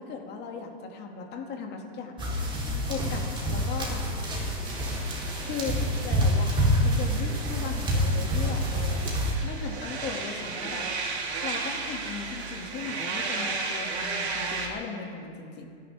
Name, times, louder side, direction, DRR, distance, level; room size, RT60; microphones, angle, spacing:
voice 1, 0.0-2.6 2.9-4.1 5.4-9.0 9.4-10.9 11.4-15.7, left 5 dB, 30° left, 2 dB, 2.5 m, -37 dB
sound 1, 2.2-9.3, equal, 15° right, 4.0 m, -27 dB
sound 2, 4.6-14.7, right 4 dB, 75° right, 3.6 m, -35 dB
29.0 x 11.0 x 3.6 m, 2.2 s
hypercardioid pair, 130°, 33 cm